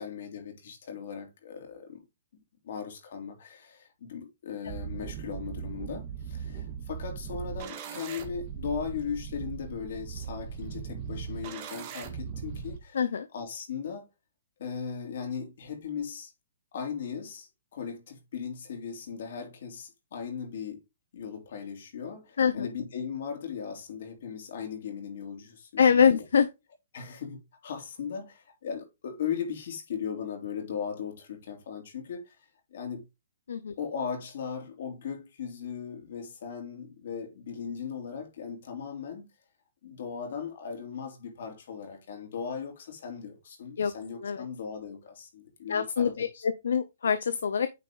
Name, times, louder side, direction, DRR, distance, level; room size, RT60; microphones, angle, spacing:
voice 1, 0.0-2.0 2.6-13.0 13.3-14.1 14.6-16.3 16.7-20.8 21.1-26.2 26.9-32.4 32.7-33.0 33.8-39.3 39.8-46.4, left 7 dB, 65° left, 3.2 m, -38 dB
sound 1, 4.7-12.8, right 7 dB, 30° right, 1.6 m, -39 dB
voice 2, 12.9-13.3 22.4-22.7 25.8-26.5 33.5-33.7 43.8-43.9 44.2-44.5 45.7-47.7, left 7 dB, 80° left, 0.6 m, -24 dB
9.4 x 4.2 x 3.8 m
hypercardioid pair, 150°, 0 cm